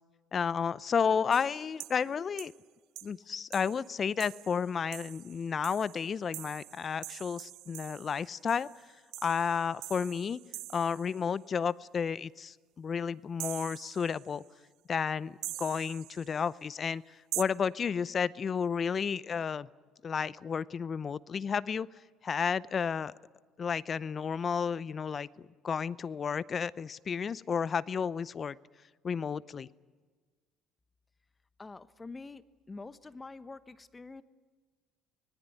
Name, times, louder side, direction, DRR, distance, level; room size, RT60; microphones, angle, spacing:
voice 1, 0.3-2.5 3.0-8.7 9.2-10.4 10.7-14.4 14.9-19.7 20.0-21.9 22.2-23.1 23.6-25.3 25.6-28.6 29.0-29.7, left 6 dB, 40° left, 19 dB, 0.6 m, -32 dB
sound 1, 1.3-2.1 2.4-2.6 3.0-3.1 3.5-11.3 13.4-14.4 15.4-16.5 17.3-17.4, right 16 dB, 70° right, 0.6 m, -44 dB
voice 2, 31.6-32.4 32.7-34.2, left 3 dB, 25° left, 13 dB, 1.1 m, -46 dB
24.5 x 19.0 x 9.4 m, 1.4 s
supercardioid pair, 70°, 0 cm